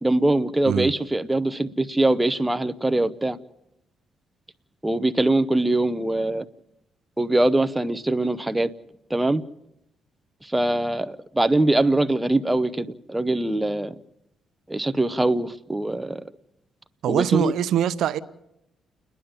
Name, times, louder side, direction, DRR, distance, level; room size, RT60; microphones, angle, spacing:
voice 1, 0.0-3.4 4.8-6.4 7.2-8.7 9.1-9.4 10.4-13.9 14.7-16.2 17.1-17.5, right 2 dB, 10° right, 0.7 m, -22 dB
voice 2, 17.0-18.2, right 10 dB, 75° right, 0.7 m, -23 dB
29.5 x 10.5 x 8.9 m
cardioid pair, 90°, 0 cm